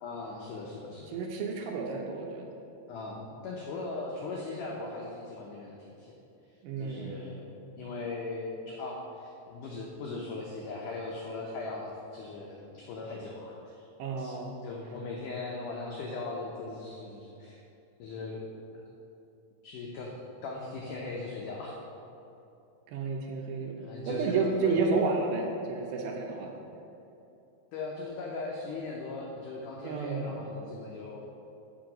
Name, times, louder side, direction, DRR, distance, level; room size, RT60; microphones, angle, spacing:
voice 1, 0.0-1.1 2.9-6.1 6.8-7.5 7.8-13.8 14.2-14.3 14.6-17.6 18.0-18.4 18.7-18.8 19.6-20.1 20.4-21.7 23.8-25.0 27.7-31.2, left 3 dB, 85° left, -2 dB, 1.8 m, -39 dB
voice 2, 1.1-2.5 6.6-7.2 14.0-14.6 22.9-23.8 24.1-26.5 29.8-30.3, right 4 dB, 80° right, 1 dB, 2.4 m, -31 dB
7.5 x 6.2 x 5.1 m, 2.9 s
omnidirectional pair, 4.7 m